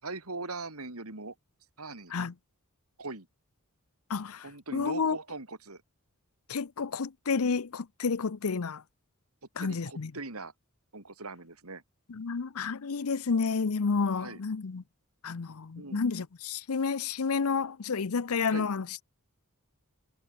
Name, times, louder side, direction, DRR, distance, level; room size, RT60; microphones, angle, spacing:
voice 1, 0.0-1.4 1.8-2.1 3.0-3.3 4.4-5.8 9.6-10.5 10.9-11.8 14.2-14.4 15.8-16.0 18.5-18.7, right 3 dB, 85° right, 3.6 m, -40 dB
voice 2, 4.1-5.2 6.5-8.8 9.6-10.1 12.1-14.8 15.2-19.0, left 5 dB, 80° left, 0.7 m, -30 dB
head